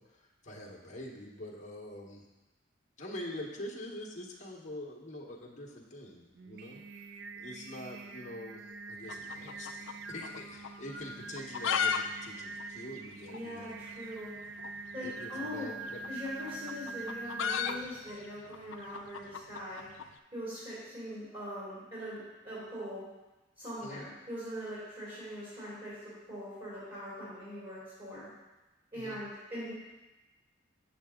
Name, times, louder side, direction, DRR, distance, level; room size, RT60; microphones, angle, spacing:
voice 1, 0.0-2.2 3.0-13.8 15.0-16.0 23.8-24.1 28.9-29.2, left 1 dB, 40° left, -1 dB, 1.2 m, -45 dB
Singing, 6.3-18.1, right 3 dB, 60° right, 0.5 m, -44 dB
sound 1, 9.0-10.4 10.6-10.7 11.3-12.0 12.3-12.4 12.6-12.7 13.3-13.4 14.6-14.8 15.9-20.1, left 7 dB, 80° left, 0.5 m, -34 dB
voice 2, 13.3-14.3 14.9-15.7 16.1-19.9 20.3-23.0 23.6-28.3 28.9-29.7, equal, 30° right, -10 dB, 3.0 m, -42 dB
8.5 x 6.9 x 3.7 m, 1.1 s
head